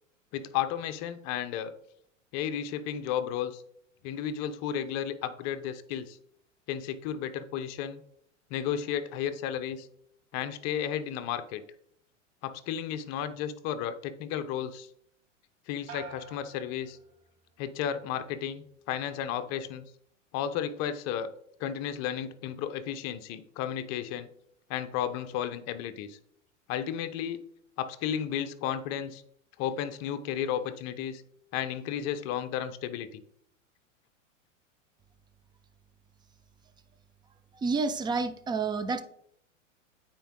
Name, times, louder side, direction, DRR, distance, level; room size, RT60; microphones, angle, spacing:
voice 1, 0.3-1.7 2.3-3.6 4.0-6.2 6.7-8.0 8.5-9.9 10.3-11.6 12.4-14.9 15.7-17.0 17.6-19.8 20.3-21.3 21.6-24.3 24.7-26.2 26.7-27.4 27.8-29.2 29.6-31.2 31.5-33.2, left 9 dB, 40° left, 11 dB, 0.7 m, -33 dB
sound 1, 15.9-17.6 18.0-18.6, right 4 dB, 75° right, 1.7 m, -49 dB
voice 2, 37.5-39.0, right 4 dB, 10° right, 11 dB, 0.4 m, -29 dB
9.0 x 4.5 x 3.7 m, 0.69 s
hypercardioid pair, 105°, 39 cm